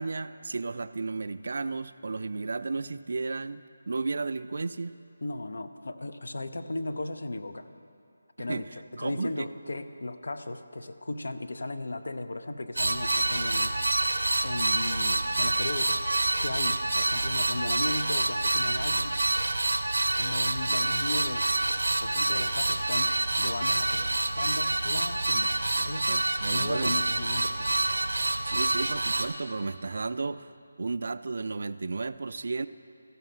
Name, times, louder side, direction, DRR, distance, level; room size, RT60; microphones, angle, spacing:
voice 1, 0.0-5.0 8.4-8.7 9.0-9.5 26.1-26.9 28.4-30.5 30.8-32.7, right 3 dB, 60° right, 13 dB, 0.3 m, -33 dB
voice 2, 5.2-7.7 8.4-13.8 14.4-16.0 16.4-19.2 20.2-21.4 22.0-26.1 26.5-27.8, left 2 dB, 70° left, 9 dB, 0.6 m, -36 dB
sound 1, 12.8-29.3, right 2 dB, 80° right, 0.7 m, -27 dB
14.0 x 5.5 x 5.7 m, 2.5 s
figure-of-eight pair, 160°, 0 cm